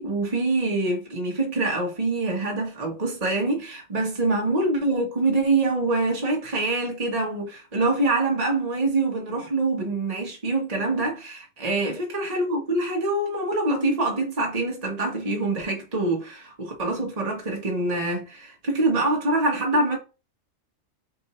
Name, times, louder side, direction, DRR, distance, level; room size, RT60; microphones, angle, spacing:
voice 1, 0.0-20.0, right 2 dB, 35° right, 1.3 m, -25 dB
3.8 x 2.6 x 4.2 m
omnidirectional pair, 1.2 m